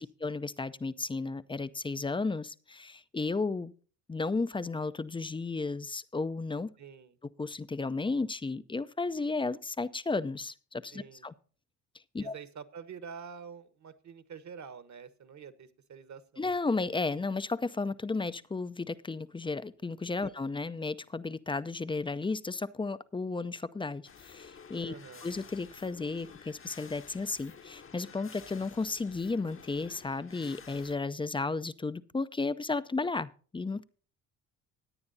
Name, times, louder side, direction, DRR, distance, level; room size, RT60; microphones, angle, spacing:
voice 1, 0.0-3.7 4.1-6.7 7.4-11.3 12.1-12.4 16.4-24.9 25.2-33.8, left 3 dB, 15° left, 15 dB, 0.4 m, -33 dB
voice 2, 6.8-7.2 10.9-11.2 12.2-16.4 20.2-20.3 24.8-25.3, right 6 dB, 45° right, 14 dB, 1.2 m, -47 dB
sound 1, 24.0-30.9, left 6 dB, 30° left, 0.9 m, -52 dB
17.0 x 9.6 x 2.7 m, 0.39 s
supercardioid pair, 60°, 39 cm